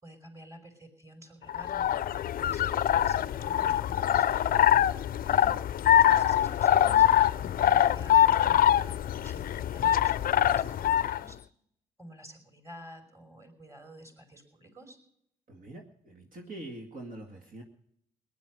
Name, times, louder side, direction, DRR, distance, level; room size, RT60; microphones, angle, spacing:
voice 1, 0.0-2.0 2.4-4.3 5.2-11.4 12.0-15.0, right 1 dB, 15° right, 5 dB, 5.1 m, -51 dB
sound 1, 1.5-11.2, left 10 dB, 55° left, 0.5 m, -24 dB
voice 2, 15.5-17.6, right 2 dB, 50° right, 1 dB, 2.2 m, -44 dB
18.5 x 11.0 x 6.4 m, 0.75 s
supercardioid pair, 60°, 18 cm